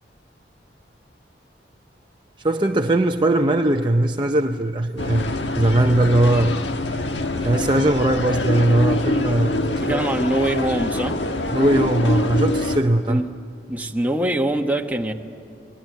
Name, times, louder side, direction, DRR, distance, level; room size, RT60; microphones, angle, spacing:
voice 1, 2.4-6.6 7.4-10.1 11.5-13.2, right 1 dB, 25° right, 0.6 m, -20 dB
sound 1, 5.0-12.8, left 2 dB, 85° left, 1.4 m, -25 dB
voice 2, 9.8-11.2 13.1-13.3 13.7-15.1, right 1 dB, 10° right, 1.3 m, -23 dB
28.5 x 20.5 x 9.4 m
head